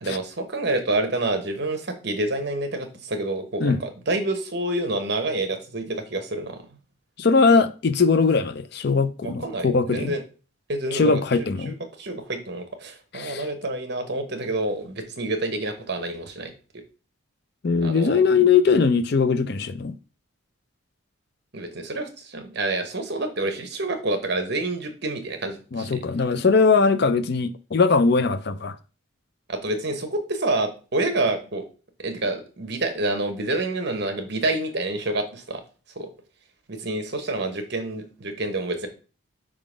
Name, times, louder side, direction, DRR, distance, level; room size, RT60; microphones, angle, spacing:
voice 1, 0.0-6.6 9.2-10.2 10.7-11.2 11.7-16.5 17.8-18.2 21.5-26.0 29.5-31.6 32.0-35.6 36.0-36.1 36.7-38.9, right 2 dB, 50° right, 1.0 m, -28 dB
voice 2, 7.2-10.1 10.9-11.8 13.1-13.5 17.6-19.9 25.7-28.7, left 4 dB, 50° left, 0.4 m, -20 dB
5.0 x 3.8 x 5.0 m
head